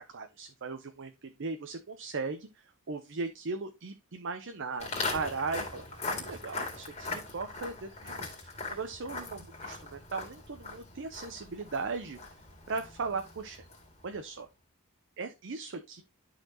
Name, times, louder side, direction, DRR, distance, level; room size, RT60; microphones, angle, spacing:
voice 1, 0.0-12.2 12.7-13.7 14.0-14.5 15.2-16.0, right 4 dB, 60° right, 7 dB, 0.7 m, -38 dB
Walk footsteps, 4.8-14.0, left 3 dB, 30° left, 2.3 m, -40 dB
11.5 x 4.2 x 2.9 m, 0.25 s
head